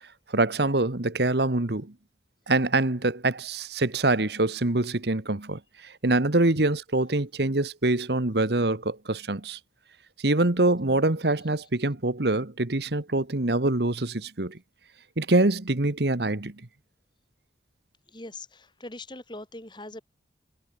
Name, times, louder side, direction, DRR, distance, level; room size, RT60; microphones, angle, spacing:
voice 1, 0.3-1.9 2.5-9.6 10.2-14.6 15.2-16.6, right 2 dB, 65° right, 1.5 m, -25 dB
voice 2, 18.1-20.0, left 2 dB, 25° left, 3.6 m, -41 dB
head